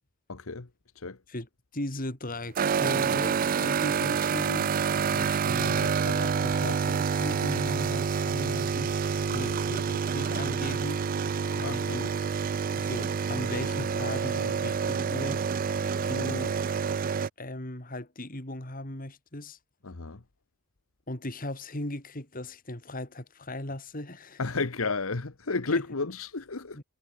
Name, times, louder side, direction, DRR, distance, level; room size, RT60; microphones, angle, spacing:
voice 1, 0.3-0.7 0.9-1.2 9.3-9.6 11.6-12.1 19.8-20.2 24.4-26.8, left 3 dB, 85° left, 1.3 m, -32 dB
voice 2, 1.7-8.9 9.3-11.1 11.6-12.1 12.4-15.4 16.0-16.6 17.4-19.6 21.1-24.4 25.7-25.8 26.8-26.9, left 1 dB, 40° left, 3.7 m, -38 dB
sound 1, 2.6-17.3, right 6 dB, 40° right, 0.4 m, -28 dB
head